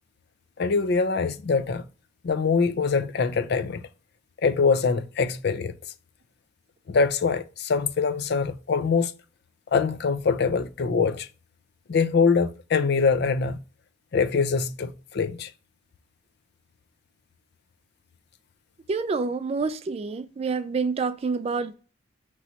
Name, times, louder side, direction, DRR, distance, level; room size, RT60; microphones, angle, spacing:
voice 1, 0.6-1.9 2.2-3.8 4.4-5.7 6.9-9.1 9.7-11.3 11.9-13.6 14.1-15.5, left 5 dB, 55° left, 0.4 m, -23 dB
voice 2, 18.9-21.7, right 4 dB, 30° right, 0.3 m, -27 dB
5.8 x 3.0 x 2.8 m
head